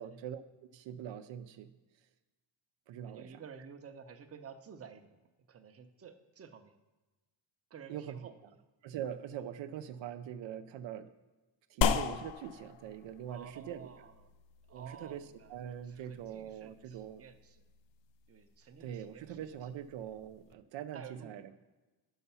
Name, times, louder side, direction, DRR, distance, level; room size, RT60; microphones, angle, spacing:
voice 1, 0.0-1.7 2.9-3.4 7.9-8.3 8.8-11.1 11.7-13.9 14.7-15.2 15.5-17.2 18.8-21.6, right 9 dB, 80° right, 9 dB, 0.6 m, -43 dB
voice 2, 3.0-5.2 5.5-6.7 7.7-8.6 13.3-14.3 14.7-17.6 18.3-19.7 20.9-21.4, right 6 dB, 35° right, 6 dB, 0.7 m, -52 dB
sound 1, 11.8-20.5, left 6 dB, 80° left, 0.6 m, -39 dB
6.8 x 5.7 x 5.5 m, 1.2 s
cardioid pair, 100°, 44 cm